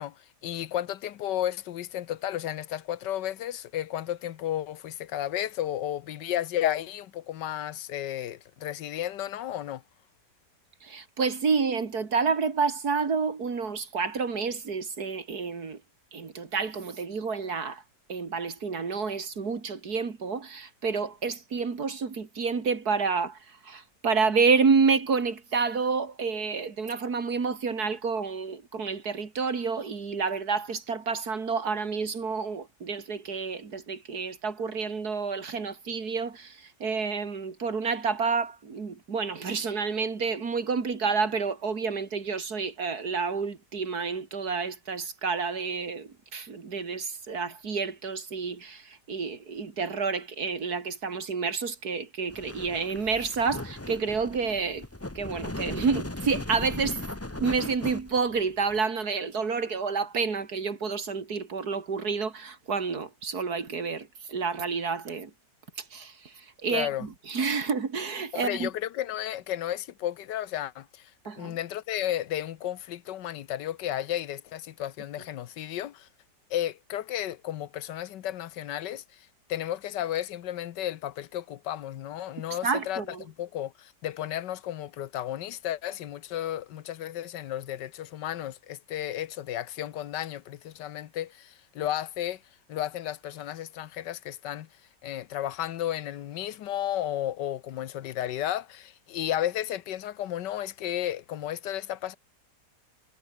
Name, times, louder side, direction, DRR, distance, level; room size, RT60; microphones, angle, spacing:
voice 1, 0.0-9.8 66.7-67.1 68.3-71.1 71.4-76.1 76.5-92.4 92.7-94.7 95.0-102.2, left 12 dB, 85° left, 1.5 m, -33 dB
voice 2, 10.8-15.8 16.1-17.8 18.1-54.8 55.1-57.0 57.4-65.3 65.9-68.7 71.3-71.6 82.6-83.2, right 5 dB, 60° right, 2.9 m, -29 dB
sound 1, 52.3-58.8, left 2 dB, 10° left, 1.0 m, -37 dB
omnidirectional pair, 1.8 m